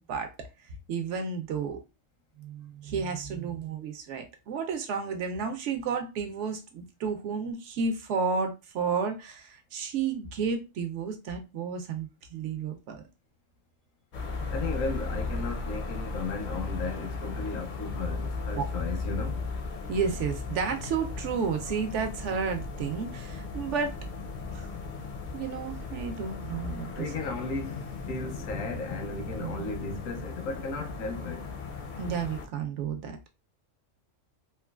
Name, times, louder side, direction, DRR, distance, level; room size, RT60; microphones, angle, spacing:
voice 1, 0.0-1.8 2.4-13.0 18.5-18.6 19.9-24.0 24.5-24.7 25.3-27.0 29.4-29.7 32.0-33.2, right 5 dB, 75° right, 0.9 m, -32 dB
sound 1, 14.1-32.5, left 4 dB, 60° left, 0.5 m, -36 dB
voice 2, 14.5-19.4 26.9-31.5, left 3 dB, 90° left, 1.1 m, -35 dB
3.0 x 2.2 x 2.3 m
omnidirectional pair, 1.3 m